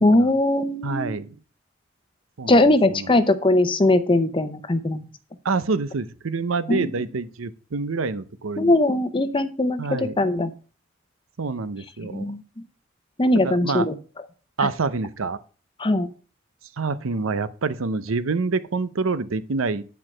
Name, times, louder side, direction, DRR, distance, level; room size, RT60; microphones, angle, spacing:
voice 1, 0.0-1.2 2.4-5.0 6.7-6.9 8.6-10.5 12.1-12.4 13.2-13.9 14.6-14.7 15.8-16.1, left 1 dB, 25° left, 0.7 m, -20 dB
voice 2, 0.8-1.4 2.4-3.1 5.4-8.7 9.8-10.2 11.4-12.3 13.3-13.9 14.6-15.4 16.8-19.9, right 4 dB, 85° right, 0.7 m, -27 dB
9.9 x 4.6 x 6.1 m
head